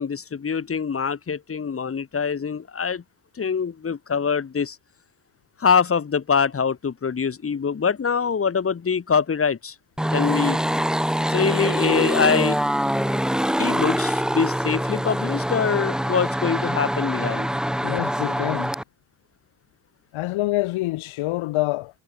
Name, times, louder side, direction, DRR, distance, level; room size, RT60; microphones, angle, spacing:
voice 1, 0.0-3.0 3.4-4.8 5.6-9.8 10.1-10.6 11.3-12.6 13.6-17.5, left 6 dB, 30° left, 7.3 m, -24 dB
sound 1, 10.0-18.8, equal, ahead, 2.6 m, -24 dB
voice 2, 17.8-18.7 20.1-22.0, left 18 dB, 75° left, 2.5 m, -26 dB
cardioid pair, 145°, 48 cm